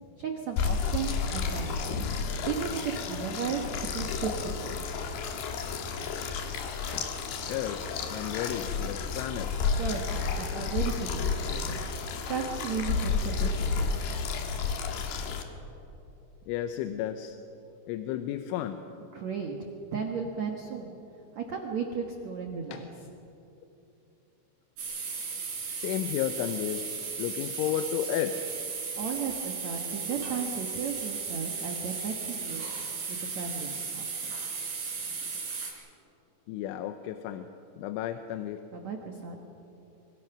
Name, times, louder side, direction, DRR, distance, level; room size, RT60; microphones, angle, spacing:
voice 1, 0.2-2.0 2.5-3.6 3.9-4.8 9.8-11.8 12.2-14.2 19.1-19.5 19.9-21.0 21.3-22.8 29.0-32.7 33.1-34.4 38.7-39.4, right 6 dB, 80° right, 2 dB, 1.6 m, -35 dB
sound 1, 0.6-15.4, left 5 dB, 65° left, 3.2 m, -31 dB
voice 2, 7.5-9.5 16.5-17.4 17.9-18.8 22.7-22.8 25.7-26.8 27.2-28.4 36.5-37.5 37.8-38.6, left 11 dB, 80° left, 8 dB, 3.2 m, -32 dB
sound 2, 24.8-35.7, right 5 dB, 45° right, 5.4 m, -35 dB
26.5 x 24.5 x 6.0 m, 2.9 s
omnidirectional pair, 5.7 m